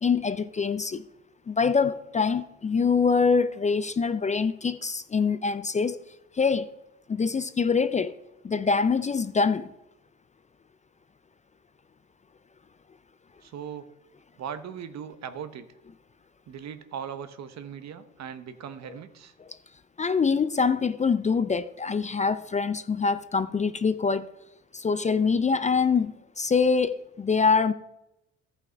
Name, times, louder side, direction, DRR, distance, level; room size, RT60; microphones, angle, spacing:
voice 1, 0.0-1.1 1.5-6.0 6.3-6.7 7.1-8.1 8.4-9.7 19.5-19.6 20.0-24.3 24.7-27.7, left 5 dB, 25° left, 0.4 m, -24 dB
voice 2, 13.4-13.8 14.4-15.7 16.5-19.3, right 8 dB, 60° right, 0.9 m, -39 dB
13.5 x 5.8 x 4.5 m
cardioid pair, 90°, 30 cm